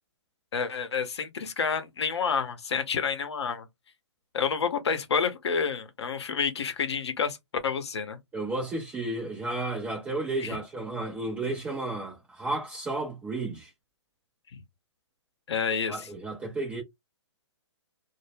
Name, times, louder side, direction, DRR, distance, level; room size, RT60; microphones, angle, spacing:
voice 1, 0.5-3.7 4.3-7.4 7.6-8.2 10.4-10.6 15.5-16.1, left 6 dB, 65° left, 0.6 m, -29 dB
voice 2, 8.3-13.7 15.9-16.8, right 2 dB, 10° right, 0.4 m, -32 dB
2.0 x 2.0 x 3.1 m
figure-of-eight pair, 130°, 15 cm